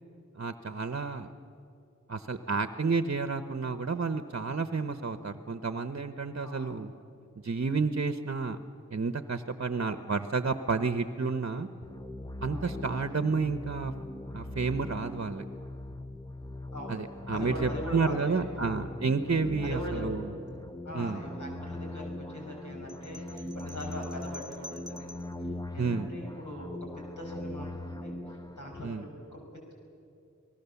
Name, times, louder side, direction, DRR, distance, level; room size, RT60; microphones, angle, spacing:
voice 1, 0.4-1.3 2.1-6.9 7.4-8.6 8.9-11.7 12.4-13.9 14.3-15.4 16.9-20.3 20.9-21.2 25.8-26.1 28.8-29.1, right 4 dB, 50° right, 10 dB, 0.9 m, -30 dB
voice 2, 6.4-6.8 12.5-13.0 16.7-17.0 17.3-18.6 19.6-20.1 20.8-25.1 25.4-29.7, equal, 70° left, -1 dB, 6.0 m, -41 dB
sound 1, 11.8-28.9, left 1 dB, 10° left, 0.7 m, -40 dB
sound 2, 22.9-25.4, left 1 dB, 10° right, 1.9 m, -48 dB
28.0 x 19.0 x 7.0 m, 2.6 s
wide cardioid pair, 65°, 31 cm